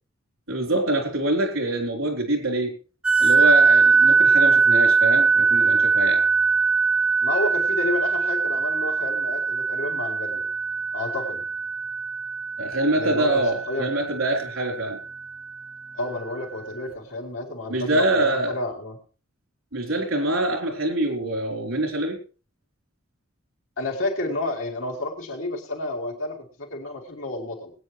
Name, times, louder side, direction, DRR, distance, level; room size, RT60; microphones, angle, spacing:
voice 1, 0.5-2.8 3.2-6.2 12.6-15.0 17.7-18.6 19.7-22.2, right 1 dB, 85° right, 3 dB, 3.9 m, -25 dB
sound 1, 3.0-15.2, right 4 dB, 5° right, 0.7 m, -21 dB
voice 2, 7.2-10.4 10.9-11.4 12.9-13.9 15.9-19.0 23.8-27.7, left 2 dB, 85° left, -2 dB, 4.2 m, -30 dB
21.0 x 9.5 x 3.2 m, 0.36 s
head